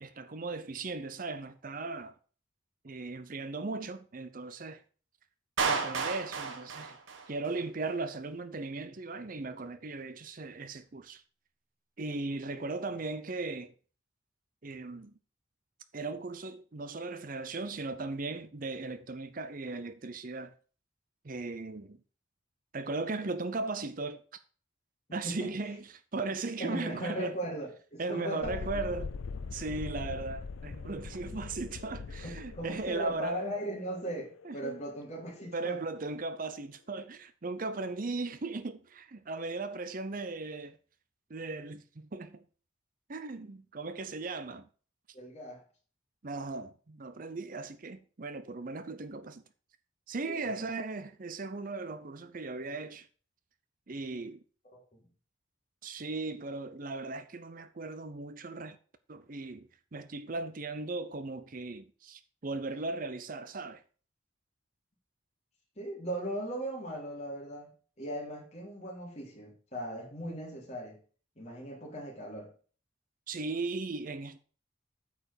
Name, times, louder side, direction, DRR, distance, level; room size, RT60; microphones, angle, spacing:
voice 1, 0.0-2.1 2.8-4.8 5.7-7.0 7.3-11.2 12.0-13.7 14.6-15.1 15.9-20.5 21.2-22.0 22.7-24.4 25.1-27.4 28.0-29.1 29.5-33.5 34.4-34.8 35.5-40.8 41.3-42.4 43.1-44.7 46.2-49.4 50.1-53.1 53.9-54.4 55.8-58.8 59.1-63.8 73.3-74.4, right 3 dB, 45° right, 0.6 m, -37 dB
Clapping, 5.6-7.6, right 5 dB, 75° right, 1.5 m, -32 dB
voice 2, 12.5-12.8 25.1-25.5 26.6-28.6 32.2-35.8 45.1-45.6 50.3-50.7 54.9-55.0 65.8-67.7 68.0-71.0 71.4-72.5, right 1 dB, 35° left, 3.2 m, -38 dB
Thunderstorm, 28.4-35.9, left 4 dB, 90° left, 0.5 m, -42 dB
8.7 x 4.9 x 6.8 m
head